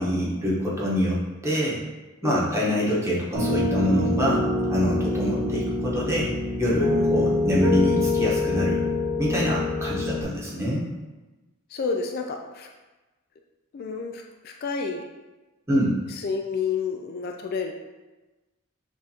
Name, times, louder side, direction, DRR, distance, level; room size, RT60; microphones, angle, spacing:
voice 1, 0.0-1.8 2.2-6.3 6.6-8.8 9.2-10.9 15.7-16.0, equal, 15° right, -6 dB, 0.9 m, -25 dB
Piano, 3.3-10.2, left 2 dB, 85° right, 1.0 m, -25 dB
voice 2, 11.7-12.7 13.7-15.1 16.1-17.7, left 5 dB, 50° left, 3 dB, 0.3 m, -30 dB
6.2 x 2.5 x 2.8 m, 1.1 s
head